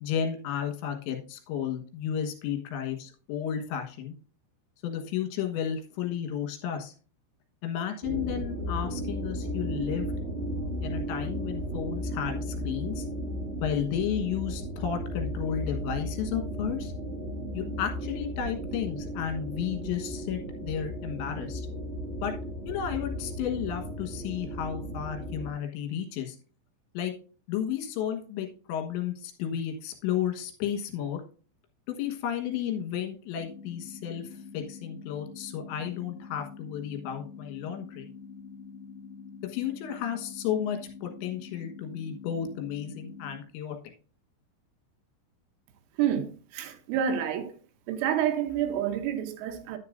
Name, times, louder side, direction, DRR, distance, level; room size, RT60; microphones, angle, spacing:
voice 1, 0.0-4.1 4.8-6.9 7.6-10.1 10.8-13.1 13.6-16.9 17.5-21.7 22.2-22.3 22.7-26.4 27.0-27.1 27.5-31.2 31.9-34.3 34.5-38.1 39.4-43.8, left 9 dB, 75° left, 3.6 m, -33 dB
sound 1, 8.0-25.5, equal, 25° right, 1.6 m, -35 dB
sound 2, 33.4-43.4, left 5 dB, 90° left, 2.2 m, -46 dB
voice 2, 46.0-47.6 47.9-49.8, right 9 dB, 85° right, 3.5 m, -28 dB
10.0 x 9.6 x 2.6 m
omnidirectional pair, 5.6 m